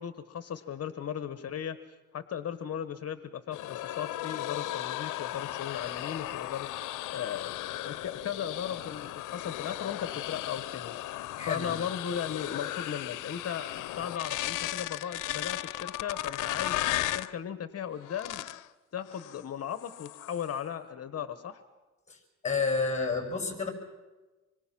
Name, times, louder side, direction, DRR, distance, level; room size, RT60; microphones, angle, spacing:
voice 1, 0.0-18.5 18.9-21.6, left 8 dB, 55° left, 11 dB, 1.2 m, -37 dB
sound 1, 3.5-17.3 18.0-18.7 19.1-19.4 19.8-20.5, left 15 dB, 85° left, 0.7 m, -36 dB
voice 2, 11.4-11.7 22.1-22.2 22.4-23.7, left 4 dB, 25° left, 4 dB, 5.8 m, -30 dB
25.5 x 24.0 x 6.0 m, 1.2 s
cardioid pair, 90°, 30 cm